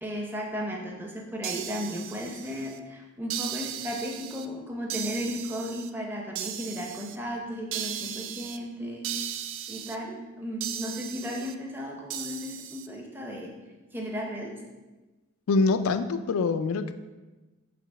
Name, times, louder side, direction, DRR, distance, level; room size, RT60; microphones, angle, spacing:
voice 1, 0.0-9.1 9.7-13.5 13.9-14.5, equal, 10° right, 0 dB, 0.7 m, -35 dB
sound 1, 1.4-2.8 3.3-4.5 4.9-5.9 6.3-7.2 7.7-8.6 9.0-10.0 10.6-11.5 12.1-12.9, right 10 dB, 65° right, 0.3 m, -36 dB
voice 2, 15.5-16.9, left 3 dB, 85° left, 11 dB, 0.4 m, -24 dB
5.8 x 3.0 x 5.3 m, 1.2 s
head